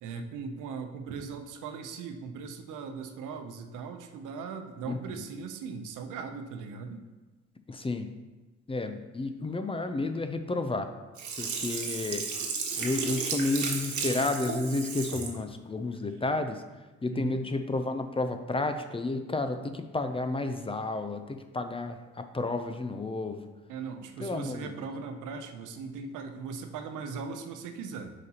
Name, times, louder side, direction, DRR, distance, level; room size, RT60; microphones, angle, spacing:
voice 1, 0.0-7.0 17.1-17.4 23.7-28.1, right 5 dB, 90° right, 6 dB, 0.8 m, -39 dB
voice 2, 4.9-5.2 7.7-8.1 8.7-10.9 11.4-12.5 12.8-16.6 17.0-23.5 24.2-24.7, left 2 dB, 20° left, 8 dB, 0.5 m, -31 dB
Sink (filling or washing), 11.2-15.4 15.8-15.9, right 5 dB, 70° right, 1.3 m, -33 dB
8.1 x 5.0 x 2.9 m, 1.2 s
cardioid pair, 90°, 30 cm